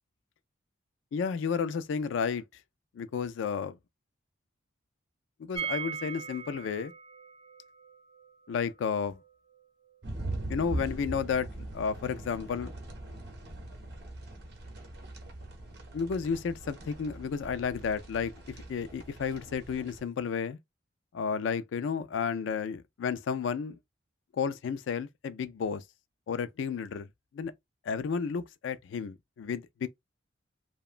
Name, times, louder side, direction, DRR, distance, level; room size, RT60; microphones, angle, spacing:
voice 1, 1.1-2.4 2.9-3.8 5.4-6.9 8.5-9.2 10.5-11.5 11.7-12.7 15.9-20.6 21.1-23.8 24.4-25.8 26.3-27.1 27.3-27.5 27.9-29.9, left 6 dB, 70° left, 0.3 m, -32 dB
sound 1, 5.5-11.3 11.6-11.7 11.9-12.0, right 7 dB, 25° right, 0.4 m, -42 dB
sound 2, 10.0-20.0, right 1 dB, 55° right, 0.7 m, -41 dB
2.8 x 2.1 x 2.4 m
head